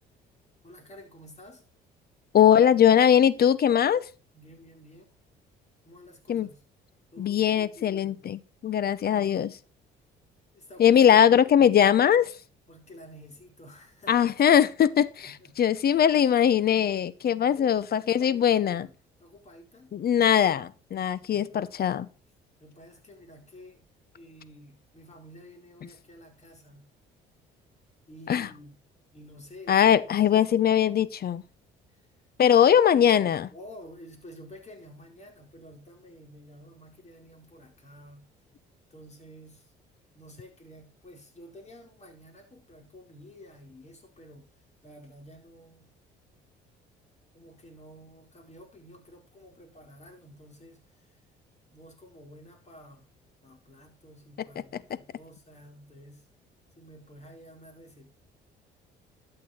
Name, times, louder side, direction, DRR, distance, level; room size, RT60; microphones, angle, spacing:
voice 1, 0.6-1.7 4.3-5.1 5.8-6.6 7.1-8.3 10.5-11.0 11.3-11.8 12.2-12.3 12.7-14.4 15.2-15.5 17.4-18.9 19.2-20.0 21.3-21.6 22.6-23.9 24.1-26.9 28.1-28.8 29.1-30.4 31.9-32.1 33.5-38.3 38.9-39.7 40.1-45.9 47.3-51.2 51.7-53.2 53.4-56.3 56.7-58.1, equal, 35° left, 4.6 m, -50 dB
voice 2, 2.3-4.1 6.3-6.5 7.2-9.6 10.8-12.3 14.1-18.9 19.9-22.1 28.3-28.5 29.7-31.4 32.4-33.5, left 9 dB, 50° left, 0.8 m, -21 dB
12.5 x 6.8 x 4.4 m
supercardioid pair, 65°, 21 cm